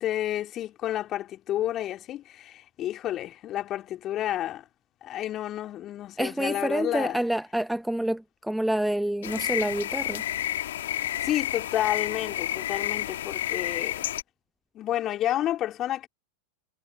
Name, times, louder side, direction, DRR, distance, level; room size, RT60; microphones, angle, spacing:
voice 1, 0.0-4.6 5.0-7.2 11.2-14.1 14.7-16.1, left 13 dB, 30° left, 3.3 m, -30 dB
voice 2, 6.2-10.2, right 1 dB, 5° right, 0.8 m, -28 dB
sound 1, 9.2-14.2, left 12 dB, 60° left, 1.8 m, -30 dB
figure-of-eight pair, 90°, 0 cm